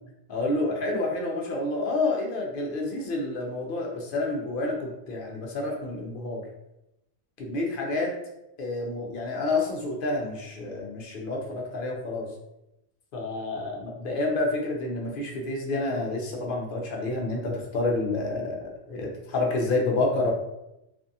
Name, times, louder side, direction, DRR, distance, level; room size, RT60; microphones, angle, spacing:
voice 1, 0.3-6.4 7.4-8.1 8.6-12.3 13.1-18.6 18.9-20.3, left 2 dB, 60° left, 0 dB, 0.7 m, -29 dB
2.6 x 2.4 x 2.6 m, 0.88 s
omnidirectional pair, 1.1 m